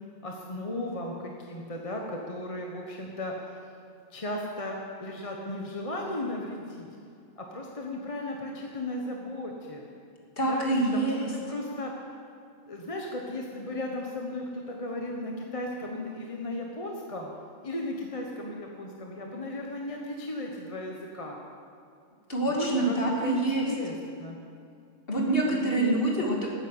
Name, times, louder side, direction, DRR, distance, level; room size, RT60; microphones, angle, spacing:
voice 1, 0.2-3.3 4.1-6.9 7.4-9.9 10.5-11.9 12.7-17.3 17.6-21.4 22.5-23.0 23.2-24.4 25.5-26.0, left 1 dB, 30° left, 0 dB, 1.1 m, -35 dB
voice 2, 10.4-11.3 22.3-23.7 25.1-26.5, right 2 dB, 45° left, -2 dB, 2.4 m, -26 dB
12.5 x 9.5 x 7.9 m, 2.4 s
omnidirectional pair, 1.4 m